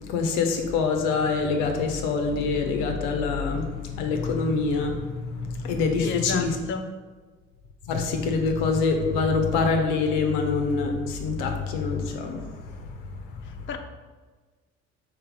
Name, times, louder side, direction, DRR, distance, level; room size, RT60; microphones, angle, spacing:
voice 1, 0.0-6.6 7.9-13.5, left 4 dB, 80° left, 4 dB, 0.7 m, -25 dB
voice 2, 6.0-6.8 13.4-13.8, left 5 dB, 30° left, 5 dB, 0.5 m, -32 dB
3.6 x 3.1 x 4.7 m, 1.4 s
hypercardioid pair, 55°, 39 cm